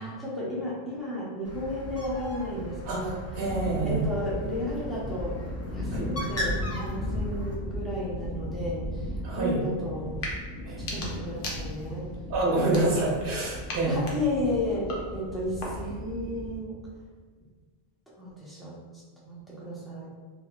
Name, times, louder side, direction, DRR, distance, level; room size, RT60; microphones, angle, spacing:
voice 1, 0.0-3.5 3.8-5.4 5.7-10.2 10.8-12.2 12.4-13.1 13.9-16.8 18.2-20.1, left 1 dB, ahead, -8 dB, 0.7 m, -33 dB
Bird, 1.4-7.5, left 1 dB, 25° left, 0.3 m, -37 dB
voice 2, 2.9-4.0 5.9-6.1 9.2-9.6 10.7-10.9 12.3-14.1, right 2 dB, 60° right, -4 dB, 1.0 m, -27 dB
sound 1, 3.4-16.6, left 1 dB, 90° left, 1.1 m, -36 dB
sound 2, 10.1-10.4 10.7-12.0 12.6-13.3 13.7-16.0, left 1 dB, 60° left, 0.8 m, -39 dB
3.4 x 3.1 x 2.3 m, 1.5 s
omnidirectional pair, 1.1 m